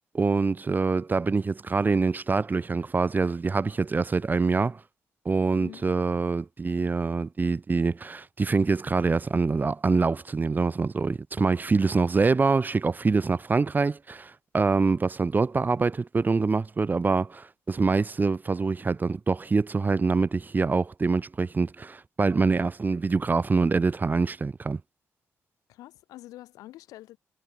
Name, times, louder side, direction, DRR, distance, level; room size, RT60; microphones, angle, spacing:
voice 1, 0.1-4.8 5.3-24.8, right 4 dB, 30° right, 0.5 m, -25 dB
voice 2, 25.7-27.2, left 15 dB, 90° left, 2.7 m, -46 dB
supercardioid pair, 55°, 6 cm